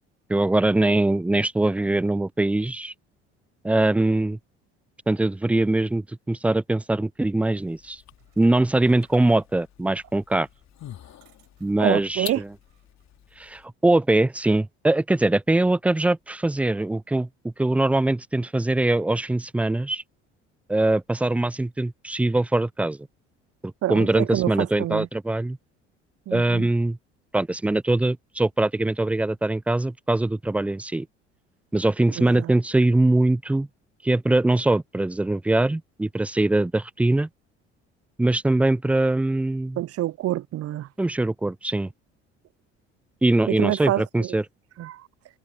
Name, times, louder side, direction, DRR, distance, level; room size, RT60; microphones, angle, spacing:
voice 1, 0.3-2.9 3.6-4.4 5.1-8.0 8.4-10.5 11.6-12.5 13.4-20.0 20.7-23.0 23.9-25.6 26.3-27.0 27.3-31.1 31.7-33.7 34.0-37.3 38.2-39.8 41.0-41.9 43.2-44.4, right 2 dB, 5° right, 0.4 m, -22 dB
sound 1, 7.6-13.7, left 11 dB, 50° left, 3.4 m, -46 dB
sound 2, 8.1-9.8 10.4-12.2 12.6-13.2, right 26 dB, 70° right, 6.0 m, -61 dB
voice 2, 11.8-12.4 23.8-25.1 26.3-26.7 32.2-32.5 39.8-40.9 43.5-44.4 44.8-45.0, right 14 dB, 45° right, 0.7 m, -27 dB
figure-of-eight pair, 55°, 34 cm